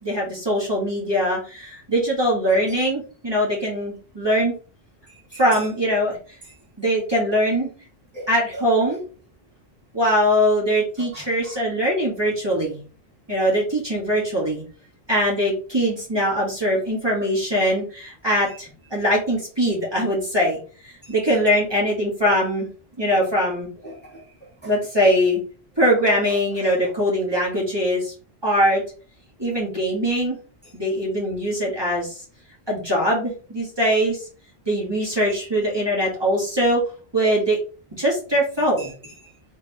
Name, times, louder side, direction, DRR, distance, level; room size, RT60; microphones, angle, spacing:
voice 1, 0.0-4.5 5.4-6.1 6.8-7.7 8.3-9.0 9.9-12.8 13.3-14.6 15.1-20.6 21.1-22.7 23.0-23.7 24.7-25.4 25.8-28.1 28.4-28.8 29.4-30.4 30.7-32.1 32.7-34.2 34.7-36.8 37.1-37.6 38.0-38.9, equal, 25° right, 1.9 m, -22 dB
voice 2, 2.5-2.8 5.1-5.7 8.1-8.6 11.0-11.6 18.5-18.6 22.2-22.3 23.8-24.2 24.6-24.7 26.6-26.7 35.3-35.4 38.8-39.3, right 2 dB, 10° left, 1.5 m, -40 dB
3.8 x 3.6 x 3.5 m
omnidirectional pair, 1.1 m